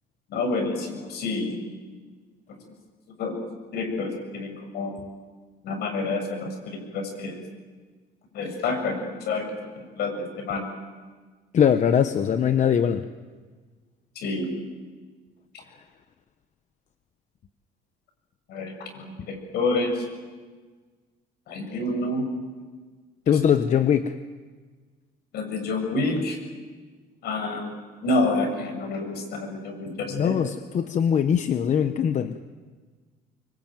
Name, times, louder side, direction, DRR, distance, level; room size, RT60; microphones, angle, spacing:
voice 1, 0.3-1.6 3.2-3.3 3.7-4.9 5.6-7.4 8.3-9.4 9.8-10.6 14.2-14.5 18.5-20.0 21.5-22.2 25.3-26.4 27.2-30.4, left 2 dB, 75° left, 4 dB, 7.3 m, -28 dB
voice 2, 11.5-13.0 23.3-24.1 30.1-32.4, left 8 dB, 45° left, 9 dB, 1.1 m, -21 dB
24.5 x 23.5 x 9.3 m, 1.4 s
cardioid pair, 110°, 17 cm